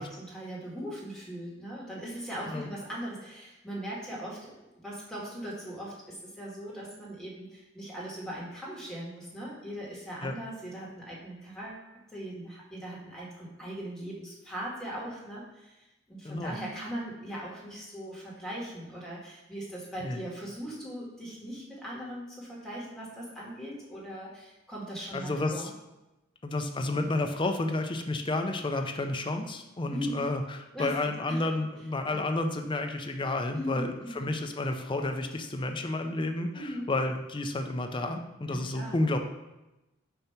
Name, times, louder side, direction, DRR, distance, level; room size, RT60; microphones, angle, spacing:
voice 1, 0.0-11.8 12.1-25.7 29.9-30.3 30.7-31.4 32.1-32.2 33.5-34.3 36.5-36.9 38.5-39.0, equal, 5° left, -6 dB, 1.7 m, -39 dB
voice 2, 16.2-16.6 20.0-20.2 25.1-25.7 26.4-39.2, left 2 dB, 25° left, 5 dB, 0.5 m, -31 dB
6.8 x 2.9 x 5.7 m, 0.98 s
head